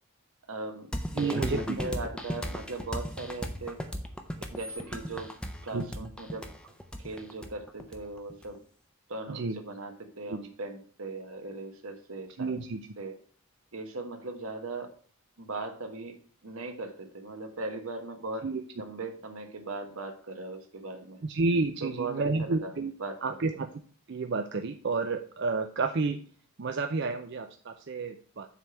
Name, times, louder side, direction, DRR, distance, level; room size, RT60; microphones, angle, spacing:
voice 1, 0.5-1.4 1.8-3.8 4.3-5.3 5.6-6.7 7.0-8.6 9.1-12.5 13.0-13.1 13.7-14.9 15.4-16.2 16.4-18.5 18.7-21.2 21.8-22.7 23.0-23.1, right 3 dB, 75° right, 5 dB, 1.4 m, -39 dB
sound 1, 0.9-8.5, equal, 5° left, 0.6 m, -36 dB
voice 2, 1.2-1.8 5.7-5.8 9.3-9.6 10.3-10.4 12.4-12.8 18.4-18.6 21.2-22.9 23.2-23.7 24.1-26.2 26.6-28.5, right 3 dB, 50° right, 6 dB, 0.5 m, -30 dB
7.4 x 3.4 x 6.3 m, 0.44 s
head